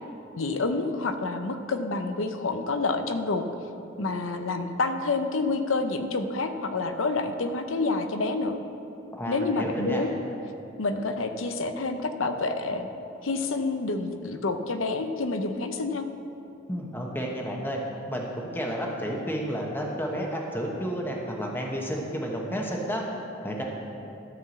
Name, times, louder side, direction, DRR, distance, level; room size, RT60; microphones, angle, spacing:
voice 1, 0.3-3.4 4.0-8.6 9.3-10.1 10.8-12.9 13.2-16.1, left 3 dB, 75° left, 8 dB, 0.7 m, -28 dB
voice 2, 9.1-10.1 16.7-17.8 18.1-23.0 23.4-23.6, equal, 10° left, -1 dB, 1.1 m, -31 dB
12.5 x 4.7 x 7.2 m, 2.9 s
head